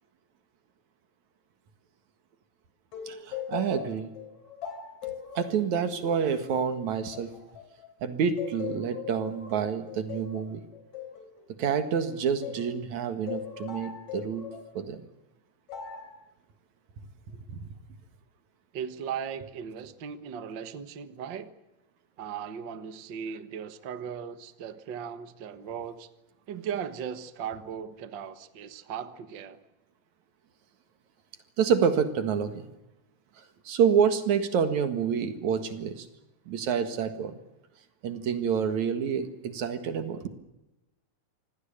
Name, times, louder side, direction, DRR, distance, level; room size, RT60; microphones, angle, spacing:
sound 1, 2.9-7.9 8.4-12.7 13.3-14.7 15.7-16.2, left 8 dB, 70° left, 5.0 m, -40 dB
voice 1, 3.1-4.1 5.3-7.3 8.0-10.6 11.6-14.4 14.7-15.0 17.5-17.6 31.6-32.7 33.7-36.1 36.5-37.3 38.0-40.3, right 7 dB, 75° right, 9 dB, 3.1 m, -28 dB
voice 2, 18.7-21.5 22.2-26.1 26.5-29.6, right 7 dB, 45° right, 11 dB, 1.8 m, -37 dB
26.5 x 19.0 x 8.7 m, 0.97 s
omnidirectional pair, 3.3 m